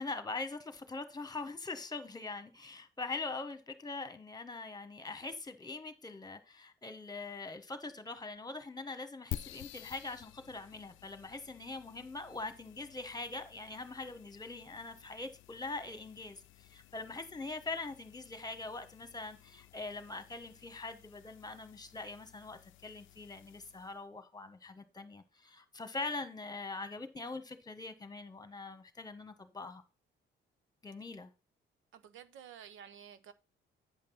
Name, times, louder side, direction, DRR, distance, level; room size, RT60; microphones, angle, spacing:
voice 1, 0.0-29.8 30.8-31.3, left 3 dB, 20° left, 1.5 m, -43 dB
sound 1, 9.3-24.0, left 15 dB, 80° left, 0.5 m, -52 dB
voice 2, 31.9-33.3, right 8 dB, 80° right, 0.9 m, -52 dB
8.8 x 5.3 x 5.5 m
cardioid pair, 90°, 20 cm